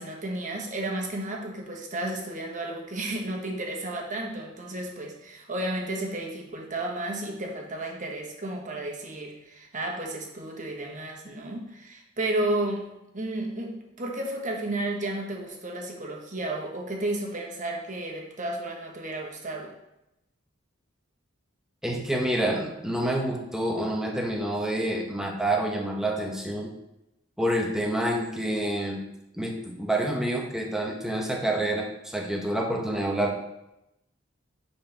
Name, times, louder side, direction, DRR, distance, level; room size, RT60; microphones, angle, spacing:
voice 1, 0.0-12.9 13.1-19.7, right 1 dB, 40° right, 1 dB, 1.3 m, -32 dB
voice 2, 21.8-26.7 27.4-29.0 29.3-33.4, right 1 dB, 5° right, 0 dB, 1.0 m, -28 dB
9.7 x 4.3 x 3.4 m, 0.89 s
head